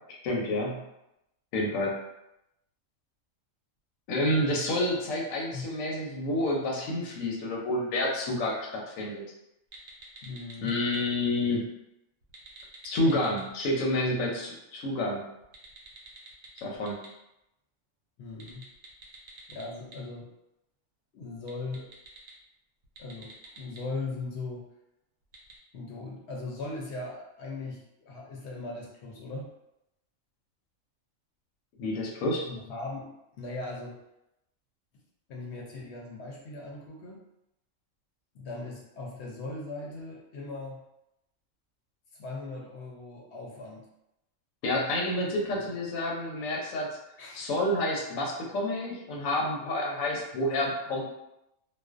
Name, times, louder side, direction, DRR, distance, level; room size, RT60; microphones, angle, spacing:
voice 1, 0.1-0.8 1.5-2.0 4.1-9.2 10.6-11.7 12.8-15.2 16.6-17.0 31.8-32.4 44.6-46.9 47.3-51.1, left 1 dB, 90° left, -1 dB, 1.0 m, -29 dB
sound 1, 9.7-11.0 12.2-13.6 15.4-17.1 18.3-19.9 21.4-22.3 22.8-23.8 25.3-25.5, right 4 dB, 65° right, 0.8 m, -48 dB
voice 2, 10.2-10.7 18.2-18.7 19.5-20.3 21.1-21.9 23.0-24.6 25.7-29.5 32.5-34.0 35.3-37.2 38.3-40.8 42.2-43.9 47.2-47.5, left 3 dB, 65° left, -2 dB, 0.8 m, -39 dB
2.4 x 2.1 x 2.3 m, 0.86 s
omnidirectional pair, 1.4 m